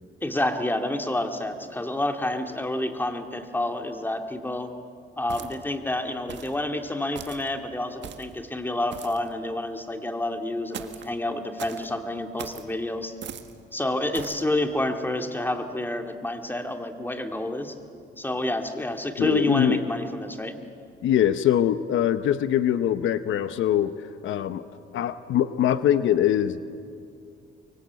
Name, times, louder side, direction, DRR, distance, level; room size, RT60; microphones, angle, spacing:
voice 1, 0.2-4.7 5.2-13.1 13.7-17.7 18.2-20.6, left 1 dB, 10° left, 5 dB, 2.3 m, -29 dB
sound 1, 5.3-5.8 6.3-6.6 7.2-7.5 8.0-8.4 8.9-9.3 10.7-11.1 11.6-11.9 12.4-12.7 13.2-13.5 14.1-14.4, right 8 dB, 65° right, 1.7 m, -40 dB
voice 2, 19.2-19.8 21.0-23.9 24.2-24.6 24.9-26.6, left 10 dB, 75° left, 12 dB, 0.9 m, -22 dB
24.5 x 23.5 x 8.3 m, 2.4 s
cardioid pair, 90°, 20 cm